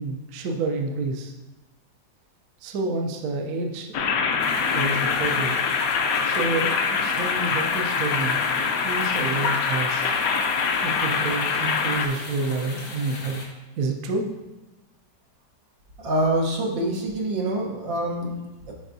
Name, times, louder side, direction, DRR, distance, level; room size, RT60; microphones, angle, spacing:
voice 1, 0.0-1.3 2.6-4.0 4.6-5.6 6.2-8.4 8.8-10.1 10.8-13.4 13.8-14.3, right 3 dB, 65° right, 2 dB, 1.0 m, -29 dB
sound 1, 3.9-12.1, left 5 dB, 65° left, 0.9 m, -24 dB
sound 2, 4.4-13.4, left 3 dB, 90° left, 1.9 m, -39 dB
voice 2, 16.0-18.7, right 1 dB, 85° right, -1 dB, 1.9 m, -26 dB
10.0 x 4.5 x 2.7 m, 1.1 s
omnidirectional pair, 2.0 m